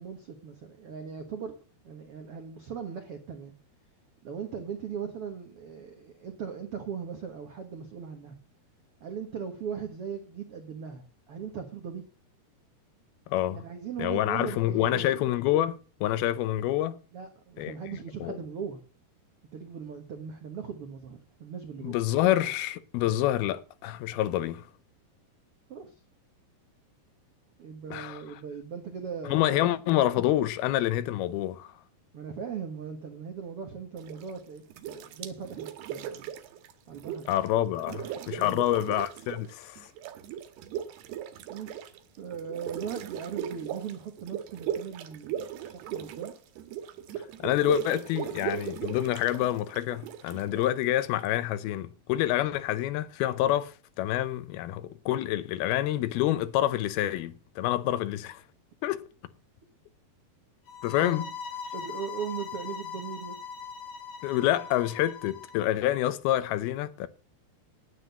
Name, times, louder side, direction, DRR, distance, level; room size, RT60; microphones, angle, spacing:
voice 1, 0.0-1.5 1.8-3.5 4.2-8.3 9.0-12.0 13.5-15.2 17.1-18.8 19.5-22.0 23.0-23.1 25.7-25.9 27.6-29.5 32.1-36.3 36.9-37.3 38.3-38.6 41.5-41.8 42.2-46.3 61.0-61.3 61.7-63.4, right 7 dB, 75° right, 1.3 m, -39 dB
voice 2, 13.3-13.6 14.0-17.0 17.6-17.7 18.2-18.4 21.8-24.7 27.9-28.2 29.3-31.7 37.3-39.9 47.4-58.4 58.8-59.0 60.8-61.3 64.2-67.1, left 13 dB, 80° left, 2.6 m, -27 dB
sound 1, 34.0-34.4 34.7-37.5 37.7-39.5 39.8-51.3, right 10 dB, 90° right, 3.2 m, -38 dB
sound 2, 60.7-65.7, left 5 dB, 50° left, 1.8 m, -40 dB
9.8 x 9.4 x 6.6 m
omnidirectional pair, 4.5 m